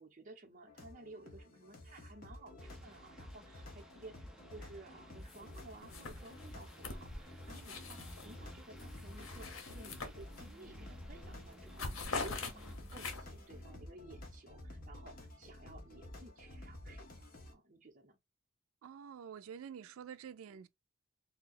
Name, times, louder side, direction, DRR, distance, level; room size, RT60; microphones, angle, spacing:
voice 1, 0.0-18.2, right 2 dB, 40° right, 0.8 m, -55 dB
sound 1, 0.7-17.5, left 1 dB, 45° left, 0.8 m, -51 dB
sound 2, 2.6-12.8, equal, 5° right, 0.3 m, -59 dB
sound 3, 5.3-5.6 5.9-8.4 8.8-10.7 11.0-11.2 11.5-13.5, left 4 dB, 85° left, 0.8 m, -44 dB
voice 2, 18.8-20.7, right 7 dB, 90° right, 0.3 m, -49 dB
2.7 x 2.2 x 3.8 m
head